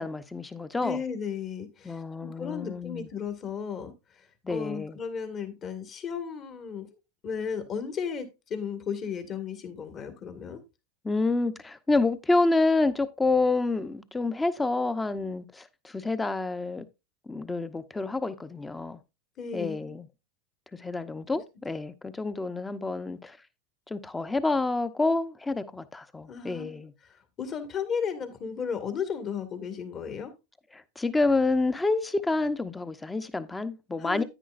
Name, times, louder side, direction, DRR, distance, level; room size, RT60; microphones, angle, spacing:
voice 1, 0.0-1.0 1.8-3.1 4.4-5.0 11.0-16.8 17.3-19.0 19.5-20.1 20.7-23.4 23.9-26.9 30.7-34.2, left 3 dB, 10° left, 0.8 m, -28 dB
voice 2, 0.8-7.0 7.2-10.6 19.4-20.0 26.3-30.3 34.0-34.2, left 6 dB, 35° left, 1.9 m, -35 dB
10.0 x 9.3 x 2.5 m
hypercardioid pair, 100°, 0 cm